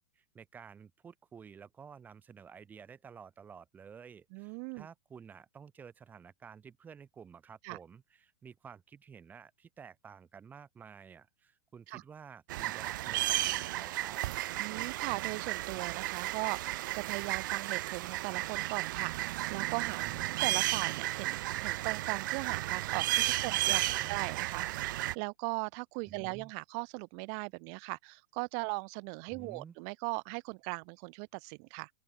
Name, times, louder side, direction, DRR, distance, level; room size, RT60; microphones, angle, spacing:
voice 1, 0.2-14.2 20.0-20.2 23.5-24.2 26.1-26.5 29.3-29.7, right 6 dB, 15° right, 2.3 m, -52 dB
voice 2, 4.3-4.9 7.6-7.8 11.9-12.0 14.6-31.9, right 40 dB or more, 40° right, 0.8 m, -39 dB
sound 1, 12.5-25.1, right 16 dB, 60° right, 0.4 m, -33 dB
open air
supercardioid pair, 155°, 12 cm